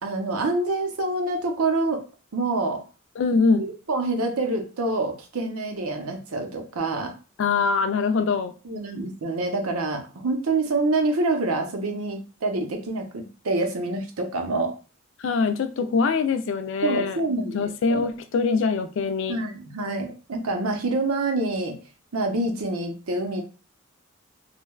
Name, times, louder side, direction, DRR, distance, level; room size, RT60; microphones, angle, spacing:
voice 1, 0.0-2.0 2.3-2.8 3.6-7.1 8.6-14.7 16.8-18.1 19.3-21.8 22.1-23.4, right 2 dB, 90° right, 0.7 m, -26 dB
voice 2, 3.2-3.6 7.4-8.5 15.2-17.2 17.5-19.4, left 4 dB, 60° left, 0.3 m, -23 dB
3.2 x 2.1 x 2.2 m
head